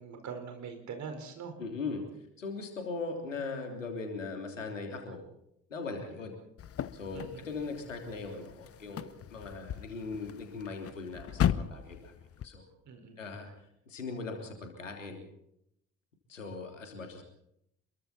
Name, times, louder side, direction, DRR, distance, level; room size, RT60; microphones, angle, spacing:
voice 1, 0.0-1.6 7.1-7.5 12.8-13.2, right 6 dB, 50° right, 5 dB, 5.0 m, -43 dB
voice 2, 1.6-2.0 2.4-5.2 5.7-6.4 6.9-12.1 12.4-12.7 13.2-13.5 13.9-15.2 16.3-17.2, left 4 dB, 85° left, 3 dB, 3.2 m, -39 dB
sound 1, 6.6-12.5, left 9 dB, 40° left, 1.0 m, -36 dB
28.0 x 22.5 x 4.3 m, 0.77 s
figure-of-eight pair, 45°, 37 cm